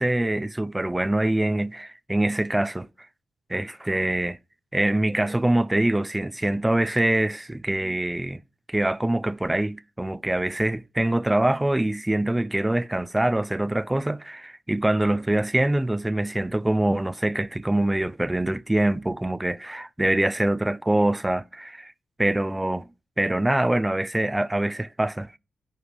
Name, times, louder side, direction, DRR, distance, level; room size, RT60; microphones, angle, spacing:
voice 1, 0.0-2.9 3.5-4.4 4.7-8.4 8.7-21.9 22.2-22.9 23.2-25.3, right 1 dB, 10° right, 0.3 m, -24 dB
9.8 x 5.1 x 4.9 m
cardioid pair, 100°, 0 cm